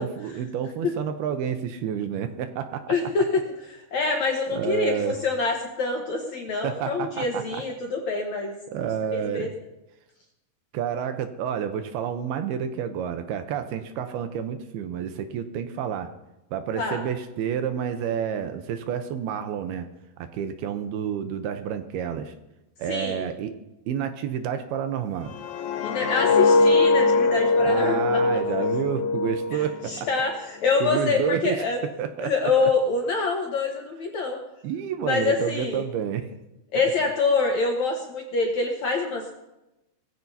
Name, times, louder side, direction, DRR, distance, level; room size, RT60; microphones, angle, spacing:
voice 1, 0.0-2.9 4.5-5.1 6.6-7.6 8.7-9.5 10.7-16.1 16.5-19.9 20.2-22.3 22.8-23.5 23.9-25.3 27.6-30.1 30.8-31.6 32.0-32.7 34.6-36.3, right 8 dB, 75° right, 8 dB, 2.6 m, -29 dB
voice 2, 2.9-3.4 3.7-8.6 9.1-9.5 16.8-17.0 22.9-23.3 25.8-28.2 29.5-31.8 32.2-34.4 35.0-35.8 36.7-39.3, left 4 dB, 60° left, 1 dB, 2.0 m, -26 dB
sound 1, 25.3-30.3 30.7-31.0, left 3 dB, 85° left, 1.6 m, -22 dB
20.0 x 15.5 x 2.8 m, 0.94 s
omnidirectional pair, 4.8 m